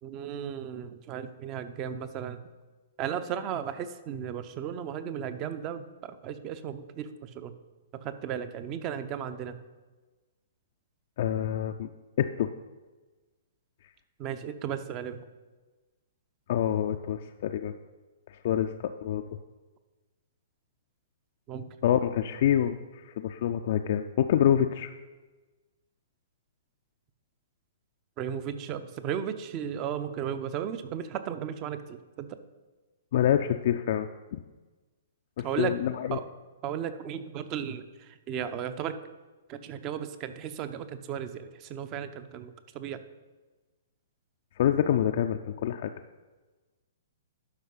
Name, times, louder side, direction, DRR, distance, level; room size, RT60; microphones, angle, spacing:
voice 1, 0.0-2.4 3.0-7.5 7.9-9.6 14.2-15.2 21.5-21.8 28.2-32.4 35.4-35.8 36.1-36.2 36.6-39.0 39.5-43.0, right 8 dB, 30° right, 11 dB, 0.6 m, -35 dB
voice 2, 11.2-11.9 12.2-12.5 16.5-17.7 18.4-19.2 21.8-24.9 33.1-34.4 35.4-36.2 44.6-45.9, left 10 dB, 50° left, 6 dB, 0.3 m, -26 dB
11.5 x 5.3 x 3.9 m, 1.3 s
figure-of-eight pair, 115°, 0 cm